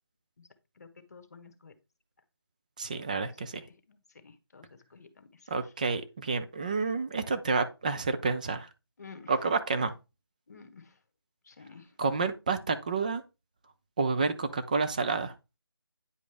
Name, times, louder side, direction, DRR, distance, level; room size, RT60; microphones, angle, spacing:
voice 1, 0.8-1.7 3.4-5.7 9.0-9.3 10.5-11.0 11.4-12.0, left 5 dB, 40° left, 1.3 m, -52 dB
voice 2, 2.8-3.6 5.5-8.7 9.3-9.9 12.0-13.2 14.0-15.3, right 4 dB, 20° right, 0.6 m, -29 dB
9.6 x 5.1 x 3.4 m
figure-of-eight pair, 165°, 13 cm